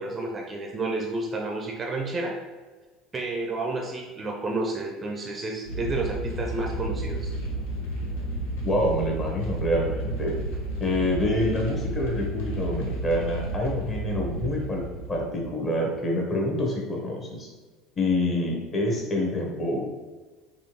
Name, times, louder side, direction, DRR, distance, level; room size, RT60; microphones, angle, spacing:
voice 1, 0.0-2.4 3.1-7.3, right 2 dB, 25° right, 0 dB, 0.6 m, -30 dB
sound 1, 5.7-15.7, right 1 dB, 65° left, 0.8 m, -32 dB
voice 2, 8.6-10.3 10.8-14.8 15.1-17.5 18.0-19.9, left 1 dB, 30° left, -1 dB, 1.1 m, -27 dB
4.2 x 2.9 x 2.9 m, 1.3 s
figure-of-eight pair, 65°, 0 cm